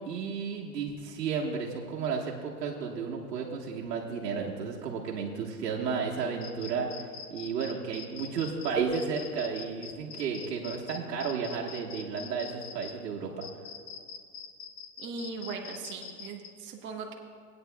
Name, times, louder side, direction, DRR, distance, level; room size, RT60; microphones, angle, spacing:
voice 1, 0.0-13.5, right 5 dB, 90° right, -3 dB, 1.5 m, -33 dB
sound 1, 6.4-12.9 13.4-16.5, left 7 dB, 75° left, 1.2 m, -43 dB
voice 2, 15.0-17.1, right 4 dB, 25° right, 0 dB, 1.1 m, -39 dB
18.5 x 9.3 x 2.3 m, 2.2 s
hypercardioid pair, 130°, 48 cm